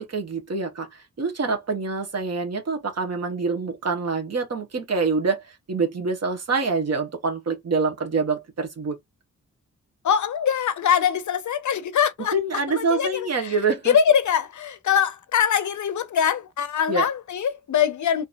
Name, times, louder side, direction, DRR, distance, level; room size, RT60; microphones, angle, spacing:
voice 1, 0.0-9.0 12.3-14.0 16.9-17.1, right 4 dB, 55° right, 1.2 m, -26 dB
voice 2, 10.0-12.3 12.7-13.5 13.8-18.2, left 8 dB, 65° left, 0.6 m, -23 dB
4.0 x 2.7 x 2.5 m
cardioid pair, 75°, 31 cm